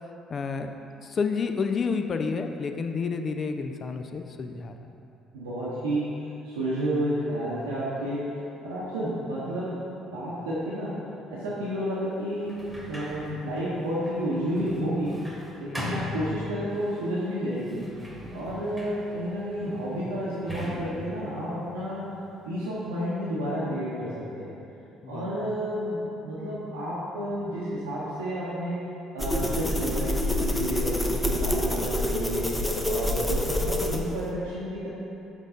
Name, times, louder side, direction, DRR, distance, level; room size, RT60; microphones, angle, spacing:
voice 1, 0.3-0.7 1.0-4.9 15.7-16.0 25.0-25.3, left 5 dB, 45° left, 6 dB, 0.4 m, -30 dB
voice 2, 5.3-6.1 6.4-8.3 8.6-9.8 10.1-11.0 11.3-15.2 15.6-17.9 18.3-22.0 22.4-24.5 25.0-26.0 26.2-28.8 29.1-32.5 32.8-34.9, equal, 80° right, -9 dB, 0.8 m, -31 dB
Sliding door, 12.4-17.0 17.6-22.4, left 1 dB, 5° right, 1.3 m, -39 dB
sound 1, 29.2-34.3, left 1 dB, 10° left, 0.7 m, -27 dB
6.3 x 3.9 x 3.9 m, 2.8 s
figure-of-eight pair, 50°, 0 cm